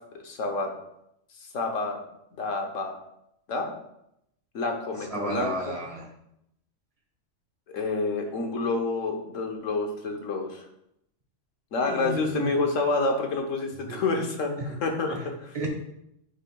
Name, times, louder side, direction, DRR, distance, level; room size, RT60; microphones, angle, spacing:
voice 1, 0.2-0.7 1.3-2.0 2.4-3.0 3.5-3.7 4.5-5.7 7.7-10.7 11.7-14.5 14.8-15.5, left 3 dB, 75° left, 3 dB, 1.4 m, -28 dB
voice 2, 5.1-6.1 11.8-12.5 13.9-14.0 14.6-14.7 15.1-15.3 15.5-15.7, right 1 dB, 25° right, 0 dB, 1.4 m, -32 dB
9.6 x 5.3 x 2.3 m, 0.79 s
omnidirectional pair, 1.3 m